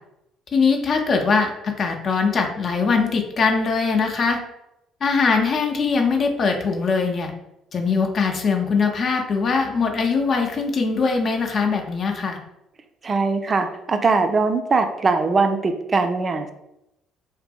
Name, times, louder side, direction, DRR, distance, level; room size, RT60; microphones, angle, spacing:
voice 1, 0.5-4.4 5.0-7.3 7.7-12.4, left 4 dB, 50° left, 3 dB, 0.5 m, -21 dB
voice 2, 13.0-16.5, right 4 dB, 40° right, 7 dB, 0.3 m, -21 dB
2.6 x 2.5 x 2.2 m, 0.87 s
hypercardioid pair, 55°, 0 cm